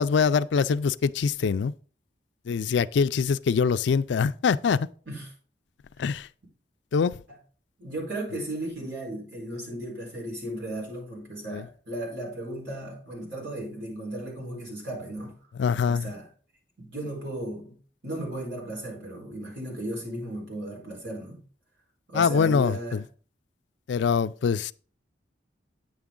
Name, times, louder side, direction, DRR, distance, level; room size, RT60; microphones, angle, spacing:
voice 1, 0.0-1.7 2.5-4.9 6.0-6.3 6.9-7.2 11.5-11.7 15.6-16.1 22.1-23.0 23.9-24.7, left 6 dB, 75° left, 0.4 m, -24 dB
voice 2, 7.8-15.4 15.9-16.3 16.8-21.4 22.1-23.0, right 1 dB, 70° right, 4.4 m, -35 dB
9.1 x 7.1 x 3.8 m
head